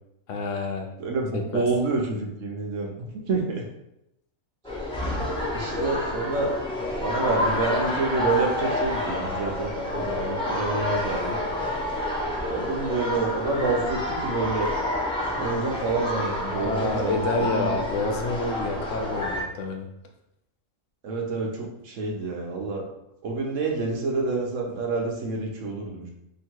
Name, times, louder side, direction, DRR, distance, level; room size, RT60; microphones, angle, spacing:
voice 1, 0.3-0.9 1.5-1.7 16.6-19.9, left 3 dB, 75° left, 3 dB, 0.9 m, -28 dB
voice 2, 1.0-3.6 5.5-6.5 7.0-11.4 12.4-14.7 15.3-17.7 21.0-22.8 23.2-26.1, right 3 dB, 75° right, 1 dB, 1.1 m, -28 dB
sound 1, 4.6-19.4, left 1 dB, 5° left, 0.6 m, -29 dB
2.9 x 2.9 x 4.4 m, 0.83 s
omnidirectional pair, 1.3 m